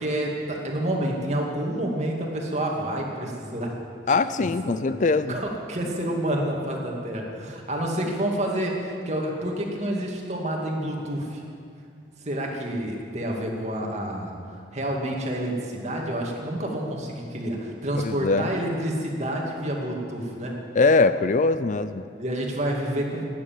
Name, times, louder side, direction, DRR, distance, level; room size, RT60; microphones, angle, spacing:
voice 1, 0.0-3.7 4.0-4.1 4.4-4.8 5.3-11.4 12.2-20.6 22.2-23.2, right 1 dB, 40° right, 0 dB, 2.4 m, -29 dB
voice 2, 4.1-5.4 18.0-18.5 20.8-22.1, left 3 dB, 45° left, 13 dB, 0.4 m, -22 dB
17.0 x 9.7 x 7.7 m, 2.4 s
head